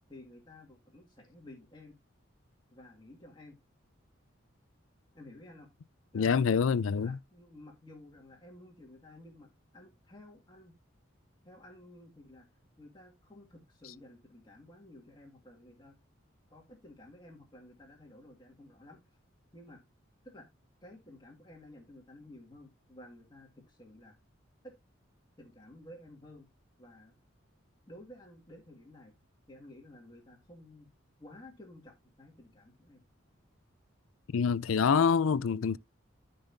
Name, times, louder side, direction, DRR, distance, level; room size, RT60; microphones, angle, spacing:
voice 1, 0.1-2.0 2.7-3.6 5.1-5.7 6.1-6.6 7.0-10.8 11.4-12.5 12.8-15.9 16.5-19.2 19.5-19.8 20.2-20.5 20.8-24.2 24.6-24.8 25.4-26.5 26.8-27.1 27.9-29.1 29.5-30.9 31.2-33.0, left 1 dB, 20° left, 2.1 m, -53 dB
voice 2, 6.1-7.1 34.3-35.8, left 6 dB, 90° left, 0.4 m, -26 dB
14.5 x 5.3 x 2.7 m
head